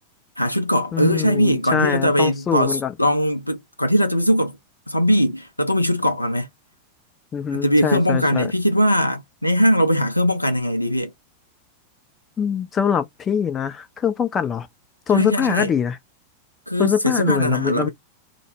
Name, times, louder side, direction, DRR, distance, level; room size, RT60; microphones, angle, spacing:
voice 1, 0.4-4.6 4.9-6.5 7.5-11.1 15.1-15.7 16.7-17.9, equal, 85° left, 0.4 m, -20 dB
voice 2, 0.9-2.9 7.3-8.5 12.4-14.7 15.1-16.0 16.8-17.9, left 7 dB, 25° left, 0.4 m, -23 dB
2.1 x 2.0 x 2.9 m
figure-of-eight pair, 90°, 0 cm